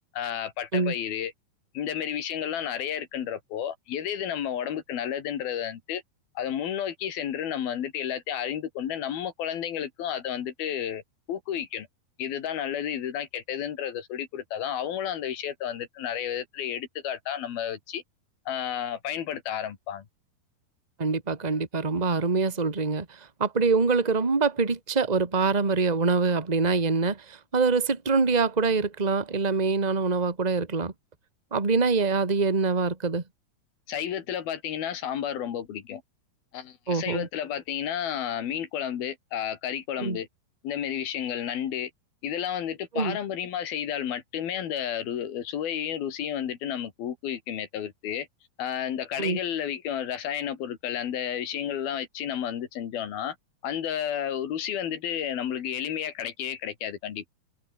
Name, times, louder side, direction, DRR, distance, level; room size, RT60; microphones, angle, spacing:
voice 1, 0.1-1.3 1.7-6.0 6.4-11.0 11.3-11.9 12.2-18.0 18.5-20.1 33.9-36.0 36.5-40.3 40.6-41.9 42.2-48.3 48.6-53.4 53.6-57.3, left 9 dB, 70° left, 4.0 m, -31 dB
voice 2, 21.0-30.9 31.5-33.2 36.9-37.3 40.0-40.2 42.9-43.2 49.2-49.4, right 4 dB, 20° right, 1.0 m, -25 dB
omnidirectional pair, 4.6 m